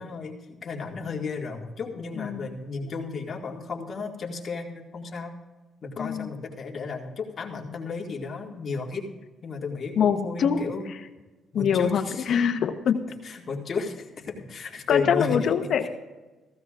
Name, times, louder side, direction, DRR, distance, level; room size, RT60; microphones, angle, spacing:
voice 1, 0.0-5.4 5.8-9.1 9.4-10.8 11.5-12.3 13.2-15.9, left 4 dB, 50° left, 0 dB, 2.1 m, -33 dB
voice 2, 2.2-2.5 6.0-6.3 10.0-10.6 11.5-12.0 12.3-13.0 14.9-15.9, left 7 dB, 65° left, 8 dB, 1.0 m, -24 dB
15.5 x 15.0 x 2.5 m, 1.2 s
supercardioid pair, 70°, 0 cm